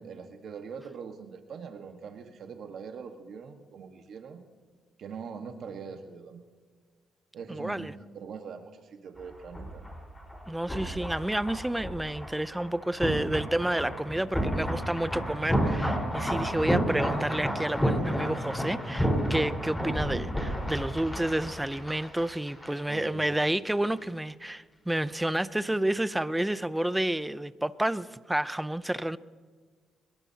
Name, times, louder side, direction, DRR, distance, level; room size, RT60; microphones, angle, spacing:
voice 1, 0.0-4.4 5.0-6.4 7.3-7.9 8.1-9.9 16.3-16.7 22.9-23.3 26.2-26.3, right 6 dB, 65° right, 5 dB, 1.5 m, -42 dB
voice 2, 7.5-7.9 10.5-29.2, right 1 dB, 5° right, 15 dB, 0.6 m, -30 dB
sound 1, 9.2-23.0 23.2-23.4, equal, 10° left, 4.5 m, -31 dB
23.5 x 20.5 x 2.9 m, 1.5 s
cardioid pair, 90°, 0 cm